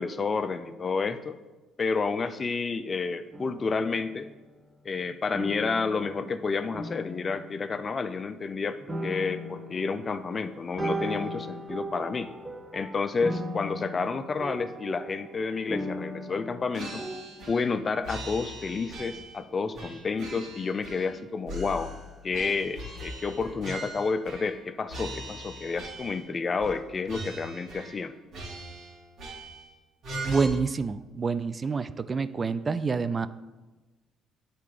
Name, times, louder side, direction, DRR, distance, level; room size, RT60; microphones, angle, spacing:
voice 1, 0.0-1.4 1.8-4.3 4.8-12.3 12.7-17.0 17.5-21.9 22.2-28.1, left 4 dB, 35° left, 13 dB, 0.5 m, -30 dB
sound 1, 3.3-4.5 5.3-8.5 8.9-17.2, equal, 15° right, 1.8 m, -38 dB
sound 2, 16.7-17.8 18.0-19.4 19.7-21.2 21.5-24.6 24.9-26.3 26.6-26.8 27.1-28.0 28.3-29.7 30.0-30.5, right 1 dB, 65° right, 2.7 m, -40 dB
voice 2, 30.2-33.3, right 5 dB, 35° right, 14 dB, 0.4 m, -27 dB
8.2 x 4.3 x 5.0 m, 1.2 s
hypercardioid pair, 60°, 0 cm